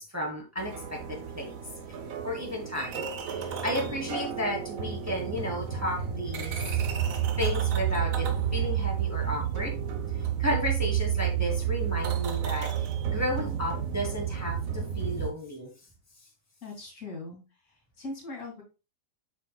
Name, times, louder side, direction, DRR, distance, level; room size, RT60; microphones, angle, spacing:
voice 1, 0.0-1.5 2.2-3.0 3.3-6.6 7.4-8.3 8.5-9.7 10.4-12.7 13.1-15.7, left 1 dB, 10° right, 0 dB, 1.4 m, -33 dB
sound 1, 0.6-15.3, right 9 dB, 75° right, 1.2 m, -30 dB
voice 2, 16.6-17.4 18.0-18.6, left 2 dB, 65° left, 0 dB, 2.7 m, -39 dB
7.6 x 5.8 x 2.3 m, 0.31 s
omnidirectional pair, 1.5 m